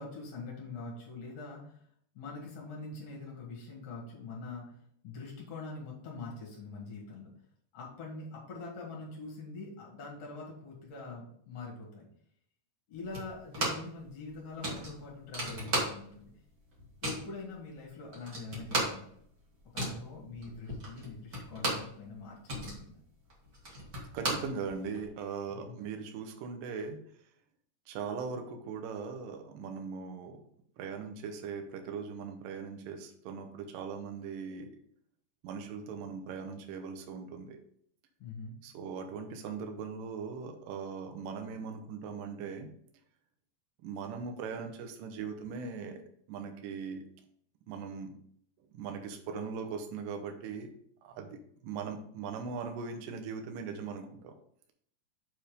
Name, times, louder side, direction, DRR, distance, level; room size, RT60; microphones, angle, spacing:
voice 1, 0.0-1.8 2.1-4.8 5.0-7.3 7.7-12.1 12.9-16.3 17.0-19.1 19.7-23.0 25.5-25.8 38.2-38.5, left 3 dB, 45° left, -2 dB, 2.5 m, -44 dB
sound 1, 13.1-14.0 14.2-14.3 14.6-16.3 16.6-17.3 17.8-17.9 18.1-22.0 22.3-25.0, right 1 dB, 55° right, 1.0 m, -35 dB
voice 2, 24.1-27.0 27.9-30.4 30.8-34.8 35.4-37.6 38.6-42.7 43.8-46.0 46.3-47.0 47.7-48.2 48.7-50.7 51.0-54.3, right 5 dB, 75° right, 5 dB, 2.1 m, -40 dB
7.2 x 4.4 x 5.1 m, 0.65 s
omnidirectional pair, 4.9 m